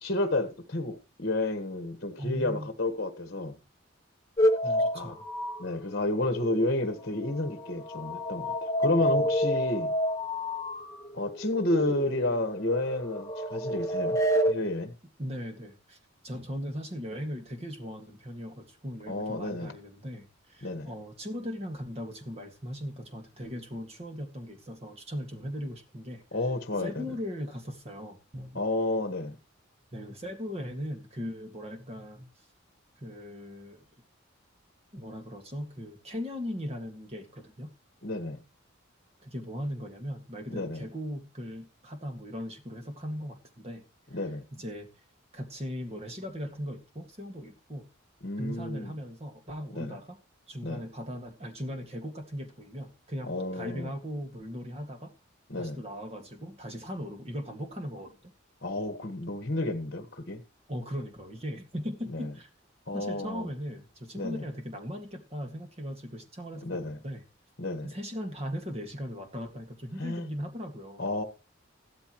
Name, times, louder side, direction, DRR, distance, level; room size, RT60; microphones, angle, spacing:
voice 1, 0.0-3.6 4.9-5.2 5.6-9.9 11.1-14.2 14.5-14.9 19.1-19.7 20.6-20.9 26.3-27.0 28.5-29.3 38.0-38.4 40.5-40.8 44.1-44.5 48.2-48.9 49.7-50.0 50.6-50.8 53.3-53.9 55.5-55.8 58.6-60.4 62.1-62.3 62.9-63.5 64.1-64.5 66.6-67.0 67.6-67.9 70.0-70.3 71.0-71.2, left 2 dB, 50° left, 1.6 m, -31 dB
voice 2, 2.2-2.7 4.6-5.3 9.2-9.3 15.2-16.0 16.2-26.2 26.8-28.6 29.9-32.3 33.0-33.9 34.9-37.7 39.2-43.8 44.1-44.2 44.5-44.9 45.3-47.9 48.4-50.2 50.5-55.1 55.6-58.3 60.7-62.5 62.9-67.2 67.8-71.1, equal, 30° right, 2.0 m, -38 dB
sound 1, 4.4-6.9 7.2-14.5, equal, 15° left, 1.0 m, -29 dB
15.0 x 12.5 x 3.1 m
head